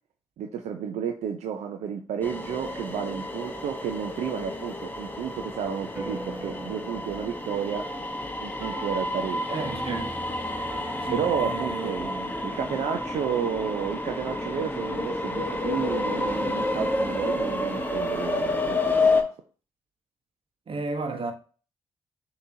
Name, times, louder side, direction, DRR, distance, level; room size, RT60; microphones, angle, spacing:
voice 1, 0.4-7.8 8.4-9.6 11.1-19.3, right 8 dB, 80° right, 0.5 m, -32 dB
sound 1, 2.2-19.2, left 2 dB, 15° left, 1.0 m, -30 dB
sound 2, 5.9-14.7, right 1 dB, 25° right, 1.2 m, -43 dB
voice 2, 9.5-10.1 11.0-11.9 20.7-21.3, right 3 dB, 50° right, 1.0 m, -32 dB
6.7 x 2.9 x 2.7 m
supercardioid pair, 50°, 11 cm